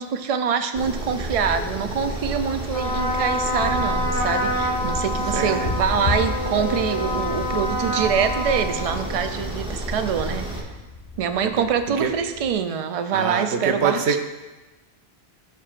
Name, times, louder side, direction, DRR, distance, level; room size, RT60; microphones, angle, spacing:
voice 1, 0.0-10.5 11.2-14.2, right 7 dB, 55° right, 8 dB, 0.4 m, -25 dB
sound 1, 0.7-10.6, right 1 dB, 5° right, 0.8 m, -31 dB
Trumpet, 2.6-9.5, left 1 dB, 80° left, 1.3 m, -27 dB
sound 2, 3.6-12.5, left 3 dB, 50° left, 1.5 m, -35 dB
voice 2, 5.3-5.7 11.4-12.1 13.1-14.2, right 6 dB, 85° right, 6 dB, 1.0 m, -25 dB
13.0 x 4.5 x 2.5 m, 1.2 s
omnidirectional pair, 1.1 m